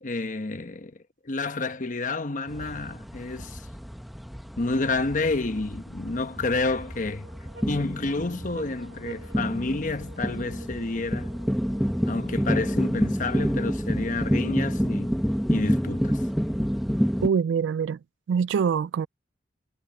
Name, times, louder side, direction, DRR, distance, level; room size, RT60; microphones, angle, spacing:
voice 1, 0.0-1.0 1.2-3.6 4.6-7.3 7.7-11.3 12.1-15.2 15.5-16.2, left 3 dB, 45° left, 1.0 m, -29 dB
sound 1, 2.5-17.3, equal, ahead, 1.1 m, -29 dB
sound 2, 5.5-13.1, right 1 dB, 65° right, 2.4 m, -50 dB
voice 2, 17.2-18.0 18.3-19.1, right 6 dB, 85° right, 0.3 m, -24 dB
head